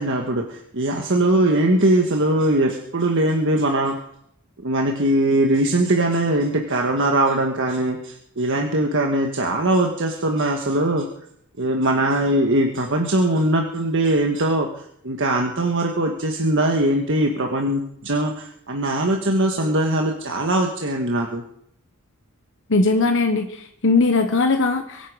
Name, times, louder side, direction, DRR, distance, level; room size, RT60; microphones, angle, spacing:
voice 1, 0.0-3.9 4.6-11.1 11.6-21.4, right 1 dB, 60° right, 2 dB, 1.6 m, -21 dB
voice 2, 22.7-25.1, left 3 dB, 60° left, 5 dB, 1.3 m, -19 dB
23.5 x 10.0 x 5.0 m, 0.72 s
head